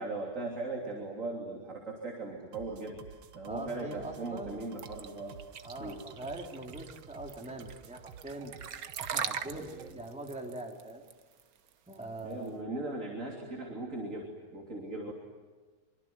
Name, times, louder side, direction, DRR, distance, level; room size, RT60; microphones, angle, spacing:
voice 1, 0.0-3.0 3.3-5.4 5.8-6.0 9.5-10.0 12.2-15.1, right 2 dB, 35° right, 1 dB, 3.5 m, -39 dB
sound 1, 2.5-9.9, right 8 dB, 90° right, 2.1 m, -52 dB
voice 2, 3.5-4.6 5.6-8.5 9.0-9.7 9.9-11.0 11.9-12.6 15.1-15.2, right 1 dB, 5° right, 1 dB, 3.0 m, -42 dB
sound 2, 4.8-12.5, right 8 dB, 50° right, 1.2 m, -40 dB
25.0 x 24.0 x 9.6 m, 1.4 s
omnidirectional pair, 2.3 m